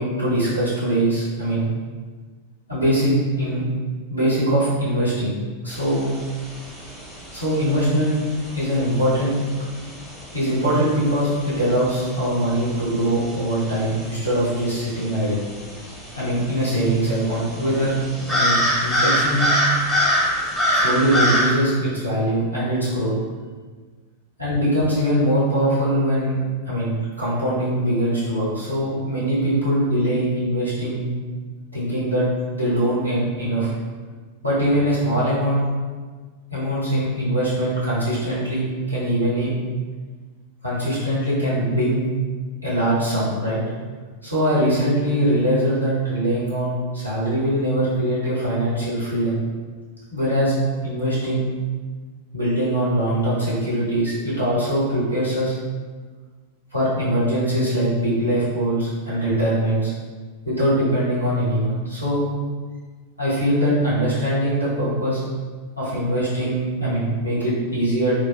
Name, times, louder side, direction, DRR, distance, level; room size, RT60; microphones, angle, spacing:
voice 1, 0.0-1.7 2.7-3.6 4.1-5.3 5.6-6.1 7.3-8.2 8.5-9.4 10.3-15.4 16.1-17.9 18.2-19.6 20.7-23.1 24.4-31.1 31.7-32.3 32.5-33.7 34.4-35.6 36.5-39.5 40.6-42.0 42.6-43.6 44.2-49.4 50.1-50.5 50.8-51.5 52.3-55.5 56.7-59.9 60.4-62.2 63.2-65.2 65.8-68.1, right 1 dB, 85° right, -10 dB, 1.3 m, -22 dB
sound 1, 5.7-21.5, equal, ahead, 0.8 m, -26 dB
3.2 x 2.6 x 2.4 m, 1.4 s
figure-of-eight pair, 90°, 0 cm